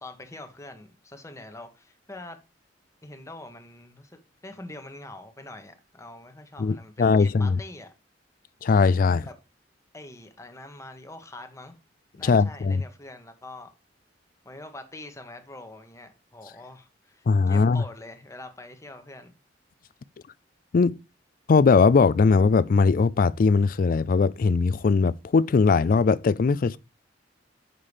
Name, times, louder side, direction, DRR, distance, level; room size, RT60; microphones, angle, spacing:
voice 1, 0.0-2.4 3.0-7.9 9.2-9.3 9.9-11.7 12.2-13.7 14.4-19.4, left 2 dB, 15° left, 1.0 m, -44 dB
voice 2, 6.6-7.6 8.6-9.2 12.2-12.8 17.3-17.8 20.7-21.0 21.5-26.8, left 4 dB, 50° left, 0.3 m, -20 dB
6.7 x 5.6 x 3.2 m
head